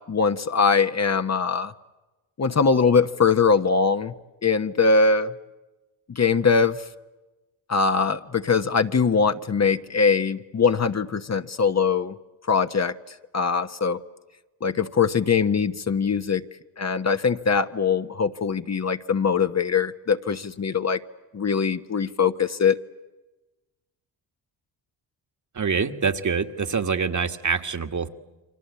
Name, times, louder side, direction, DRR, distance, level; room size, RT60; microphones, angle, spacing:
voice 1, 0.1-1.7 2.4-4.1 4.4-5.3 6.1-6.8 7.7-12.1 12.5-14.0 14.6-16.4 16.8-21.0 21.3-22.8, left 5 dB, 35° left, 9 dB, 1.2 m, -22 dB
voice 2, 25.6-28.1, right 5 dB, 40° right, 7 dB, 1.9 m, -25 dB
29.5 x 24.0 x 8.4 m, 1.1 s
supercardioid pair, 60°, 45 cm